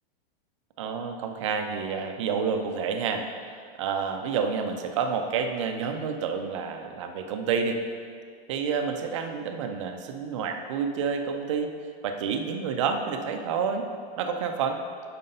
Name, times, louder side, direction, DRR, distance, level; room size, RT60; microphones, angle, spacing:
voice 1, 0.8-3.3 3.8-7.8 8.5-11.7 12.0-13.9 14.2-14.8, right 6 dB, 30° right, 5 dB, 0.4 m, -29 dB
5.5 x 5.5 x 5.2 m, 2.1 s
supercardioid pair, 170°, 30 cm